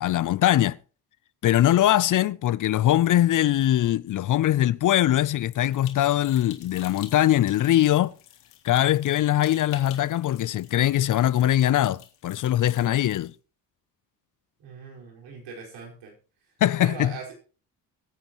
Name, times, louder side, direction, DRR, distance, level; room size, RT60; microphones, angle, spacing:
voice 1, 0.0-0.8 1.4-8.1 8.6-13.3 16.6-17.1, left 12 dB, 50° left, 0.5 m, -22 dB
sound 1, 5.5-13.3, left 11 dB, 85° left, 1.8 m, -49 dB
voice 2, 14.6-16.1 16.8-17.4, right 5 dB, 80° right, 5.0 m, -40 dB
23.0 x 8.8 x 3.0 m
supercardioid pair, 70°, 42 cm